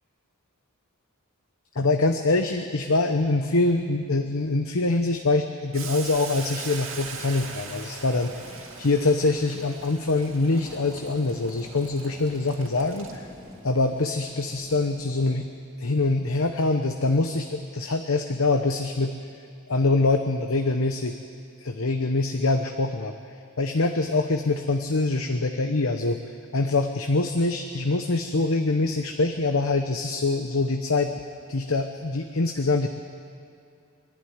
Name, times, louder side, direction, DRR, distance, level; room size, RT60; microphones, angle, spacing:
voice 1, 1.7-13.3 13.6-15.5 15.8-19.2 19.7-21.1 21.6-23.1 23.6-26.2 26.5-31.2 31.5-32.9, left 3 dB, 70° left, 6 dB, 0.9 m, -24 dB
Boiling, 5.7-13.5, right 5 dB, 65° right, 2.4 m, -41 dB
sound 1, 8.1-15.5, left 1 dB, 15° left, 3.1 m, -48 dB
24.0 x 12.0 x 9.7 m, 2.5 s
head